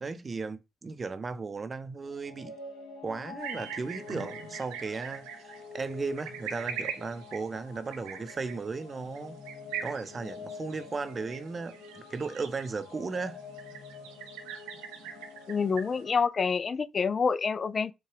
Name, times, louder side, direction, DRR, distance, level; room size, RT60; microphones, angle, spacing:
voice 1, 0.0-2.5 3.0-9.4 9.8-13.4, right 4 dB, 40° right, 0.6 m, -36 dB
sound 1, 2.0-16.2, left 5 dB, 85° left, 1.1 m, -47 dB
sound 2, 3.4-16.0, right 8 dB, 85° right, 0.6 m, -43 dB
voice 2, 15.5-17.9, left 5 dB, 45° left, 0.3 m, -27 dB
4.6 x 2.3 x 3.2 m
hypercardioid pair, 50°, 0 cm